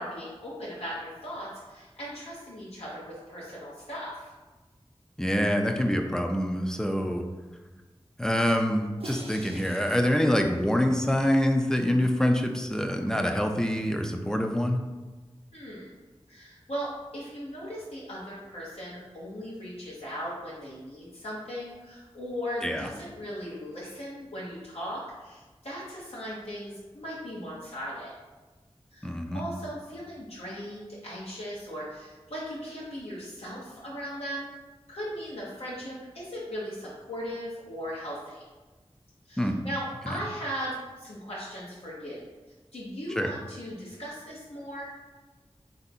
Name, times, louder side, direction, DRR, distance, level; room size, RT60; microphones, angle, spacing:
voice 1, 0.0-4.3 15.5-15.9 16.3-28.1 28.9-34.5 34.9-38.4 39.2-42.2 42.7-44.9, equal, 75° left, -7 dB, 0.9 m, -38 dB
voice 2, 5.2-7.2 8.2-14.8 22.6-22.9 29.0-29.4 39.4-39.6 43.2-43.3, equal, 5° left, 4 dB, 0.4 m, -25 dB
Crash cymbal, 9.0-11.2, right 2 dB, 65° right, 0.6 m, -46 dB
3.4 x 2.7 x 4.1 m, 1.2 s
wide cardioid pair, 60°, 11 cm